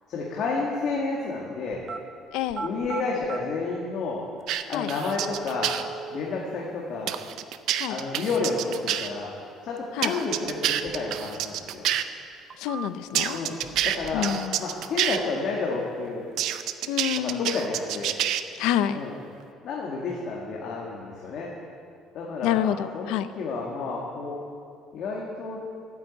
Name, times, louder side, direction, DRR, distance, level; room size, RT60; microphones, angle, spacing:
voice 1, 0.1-1.8 2.6-4.2 4.7-5.7 6.1-7.1 7.9-9.3 9.6-11.8 13.3-13.6 13.9-14.3 14.6-16.3 17.2-18.1 18.9-19.1 19.6-21.5 22.1-24.3 24.9-25.6, left 4 dB, 55° left, -3 dB, 2.0 m, -30 dB
sound 1, 1.7-2.0 2.5-3.4 4.4-4.5 5.2-6.2 10.2-11.2 11.6-11.7 12.3-13.2 13.6-14.3 14.6-15.2, right 5 dB, 35° right, 0.8 m, -38 dB
voice 2, 2.3-2.7 4.7-4.9 7.8-8.0 9.9-10.1 12.6-13.4 14.1-14.6 16.9-17.6 18.6-19.0 22.4-23.3, left 11 dB, 90° left, 13 dB, 0.6 m, -27 dB
sound 2, 4.5-5.8 7.1-9.1 10.0-12.0 13.1-15.2 16.4-18.4, right 11 dB, 65° right, 0.6 m, -27 dB
13.0 x 9.4 x 8.3 m, 2.4 s
cardioid pair, 140°, 0 cm